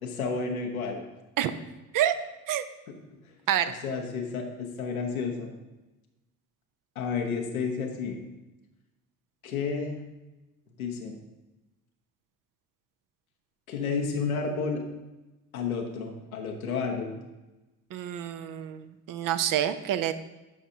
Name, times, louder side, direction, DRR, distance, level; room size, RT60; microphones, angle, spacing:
voice 1, 0.0-1.0 2.9-3.0 3.8-5.5 6.9-8.2 9.4-10.0 10.8-11.1 13.7-14.8 15.5-17.2, left 5 dB, 90° left, 1 dB, 1.1 m, -31 dB
voice 2, 17.9-20.1, right 11 dB, 50° right, 11 dB, 0.7 m, -27 dB
12.0 x 5.9 x 2.8 m, 1.1 s
hypercardioid pair, 50°, 41 cm